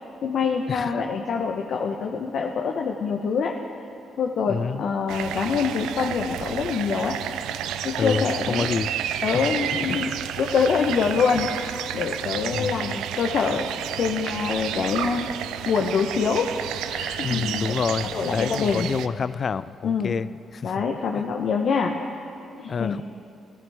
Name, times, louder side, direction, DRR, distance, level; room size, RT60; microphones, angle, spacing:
voice 1, 0.2-3.6 4.2-7.2 7.8-8.7 9.2-10.1 10.4-15.3 15.7-18.9 19.8-20.1 20.6-21.9 22.6-23.0, left 5 dB, 65° left, 2 dB, 0.8 m, -25 dB
voice 2, 4.5-4.8 8.0-8.9 9.9-10.2 12.4-12.9 17.2-20.3 20.5-20.7 22.7-23.0, left 5 dB, 45° left, 16 dB, 0.3 m, -28 dB
sound 1, 5.1-19.1, right 10 dB, 90° right, 0.4 m, -31 dB
16.0 x 14.0 x 3.5 m, 2.6 s
cardioid pair, 90°, 0 cm